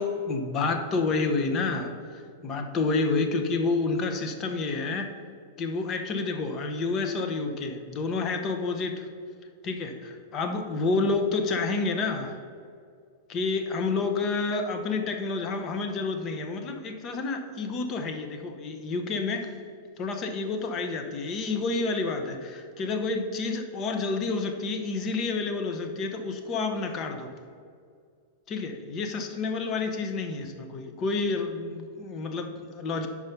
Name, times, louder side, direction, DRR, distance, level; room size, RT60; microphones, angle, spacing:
voice 1, 0.0-5.1 5.6-9.0 9.6-12.4 13.3-19.5 20.0-27.3 28.5-33.1, left 3 dB, 30° left, 5 dB, 0.8 m, -29 dB
5.3 x 4.8 x 5.7 m, 2.2 s
hypercardioid pair, 130°, 0 cm